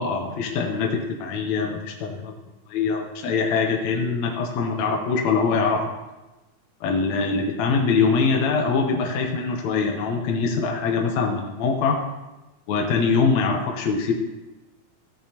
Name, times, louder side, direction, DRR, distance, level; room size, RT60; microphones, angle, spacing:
voice 1, 0.0-2.3 2.7-5.8 6.8-12.0 12.7-14.1, left 4 dB, 70° left, 1 dB, 2.0 m, -23 dB
14.5 x 9.1 x 2.9 m, 1.1 s
omnidirectional pair, 3.6 m